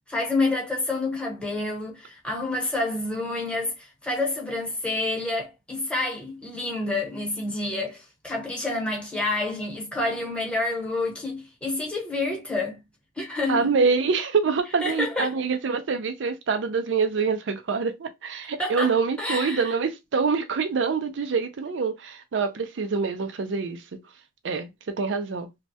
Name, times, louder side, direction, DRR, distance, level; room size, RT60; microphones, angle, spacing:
voice 1, 0.1-12.8 13.2-13.7 14.8-15.4 18.6-19.7, left 2 dB, 5° left, 1.0 m, -28 dB
voice 2, 13.5-24.0 24.4-25.5, right 5 dB, 75° right, 0.5 m, -25 dB
3.2 x 2.2 x 2.7 m
head